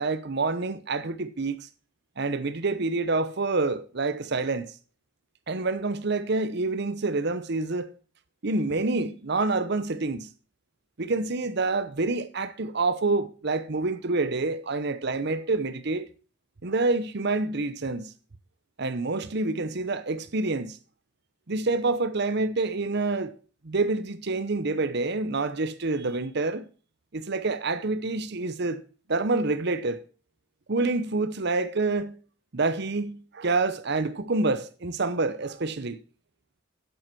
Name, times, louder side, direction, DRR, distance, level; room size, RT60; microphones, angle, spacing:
voice 1, 0.0-1.7 2.2-4.7 5.5-7.9 8.4-10.3 11.0-16.1 16.6-18.1 18.8-20.8 21.5-23.3 23.6-26.7 27.1-28.8 29.1-30.0 30.7-32.2 32.5-36.0, right 3 dB, 55° right, 0.8 m, -27 dB
8.0 x 7.8 x 6.2 m
head